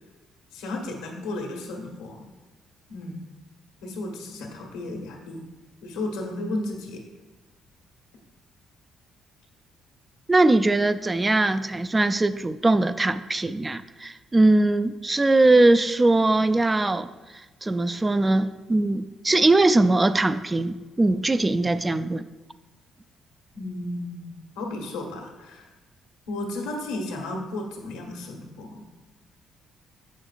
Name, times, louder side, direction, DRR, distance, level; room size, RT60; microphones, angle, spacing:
voice 1, 0.5-2.3 2.9-3.2 3.8-5.4 5.8-7.0 23.5-25.7 26.3-28.8, left 2 dB, 90° left, 0 dB, 1.3 m, -33 dB
voice 2, 10.3-17.1 17.6-22.3, right 2 dB, 25° right, 13 dB, 0.3 m, -21 dB
7.9 x 6.4 x 2.4 m, 1.2 s
supercardioid pair, 60°, 0 cm